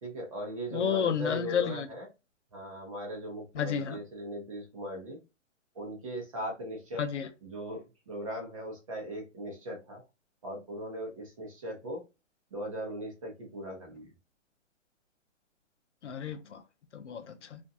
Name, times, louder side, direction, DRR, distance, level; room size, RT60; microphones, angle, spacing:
voice 1, 0.0-2.1 2.5-5.2 5.7-7.0 7.4-10.0 10.4-12.0 12.5-14.1, equal, 25° right, 0.7 m, -39 dB
voice 2, 0.7-1.9 3.6-4.0 7.0-7.3 16.0-16.6 16.9-17.6, left 7 dB, 65° left, 0.6 m, -31 dB
2.5 x 2.1 x 2.6 m
hypercardioid pair, 170°, 38 cm